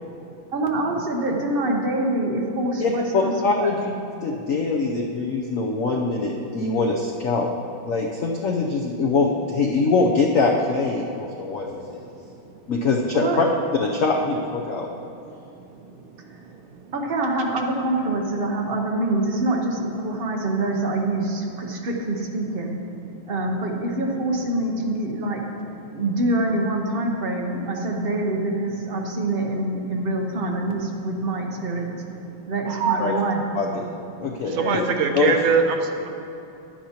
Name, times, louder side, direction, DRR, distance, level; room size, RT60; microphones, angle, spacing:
voice 1, 0.5-3.3 3.6-3.8 13.1-13.4 16.3-16.4 16.9-22.8 23.3-25.4 25.9-32.0 32.5-33.5 34.5-34.9, right 2 dB, 50° right, 0 dB, 0.7 m, -25 dB
voice 2, 2.8-3.9 4.2-7.5 7.8-12.0 12.7-13.5 13.8-14.9 33.0-33.1 33.5-33.9 34.2-34.8 35.1-35.3, left 3 dB, 85° left, 0 dB, 0.7 m, -23 dB
voice 3, 32.8-33.3 34.6-35.8, right 5 dB, 85° right, 4 dB, 1.6 m, -21 dB
11.5 x 10.0 x 2.9 m, 2.8 s
omnidirectional pair, 2.2 m